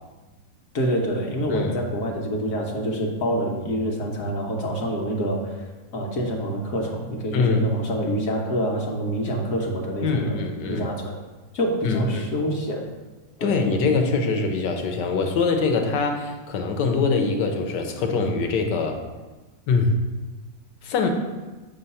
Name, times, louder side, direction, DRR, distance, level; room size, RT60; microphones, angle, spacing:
voice 1, 0.7-5.6 5.9-10.4 10.7-11.2 11.5-12.9 13.4-13.6, equal, 60° left, 0 dB, 1.1 m, -26 dB
voice 2, 7.3-7.7 10.0-10.9 11.8-12.3 13.4-19.0 19.7-20.0 20.8-21.1, left 4 dB, 90° left, 4 dB, 1.4 m, -23 dB
6.8 x 3.1 x 5.4 m, 1.2 s
omnidirectional pair, 1.8 m